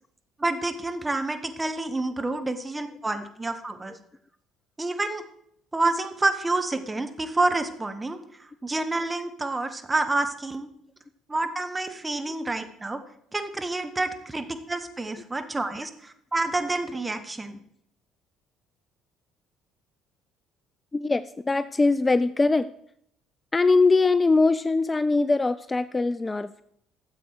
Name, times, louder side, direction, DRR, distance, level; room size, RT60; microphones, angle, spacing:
voice 1, 0.4-4.0 4.8-5.2 5.7-10.7 11.3-13.0 13.3-17.6, right 2 dB, 20° right, 7 dB, 1.4 m, -28 dB
voice 2, 20.9-22.7 23.5-26.6, left 3 dB, 20° left, 15 dB, 0.4 m, -22 dB
13.0 x 7.6 x 4.9 m, 0.70 s
figure-of-eight pair, 50°, 0 cm